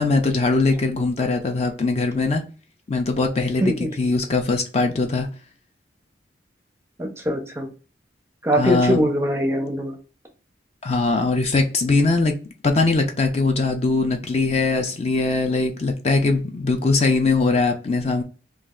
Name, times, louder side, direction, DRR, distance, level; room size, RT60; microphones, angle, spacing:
voice 1, 0.0-2.4 2.9-5.3 8.5-9.1 10.8-12.3 12.6-18.2, left 3 dB, 35° left, 4 dB, 0.5 m, -21 dB
voice 2, 3.6-3.9 7.0-7.7 8.4-10.0, equal, 15° right, 3 dB, 0.6 m, -22 dB
3.1 x 2.4 x 3.7 m, 0.34 s
head